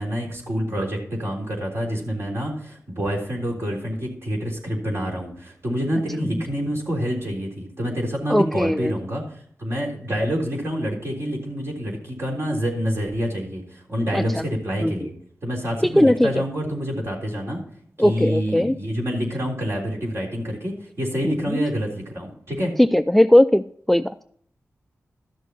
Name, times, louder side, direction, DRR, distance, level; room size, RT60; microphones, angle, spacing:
voice 1, 0.0-9.2 9.6-15.1 15.4-17.6 18.0-22.7, equal, 50° right, -1 dB, 3.6 m, -27 dB
voice 2, 8.3-8.9 14.1-14.4 14.8-15.1 15.8-16.3 18.0-18.7 21.2-21.6 22.8-24.2, left 1 dB, 5° left, 13 dB, 0.3 m, -19 dB
13.5 x 6.4 x 4.0 m, 0.62 s
wide cardioid pair, 75°, 5 cm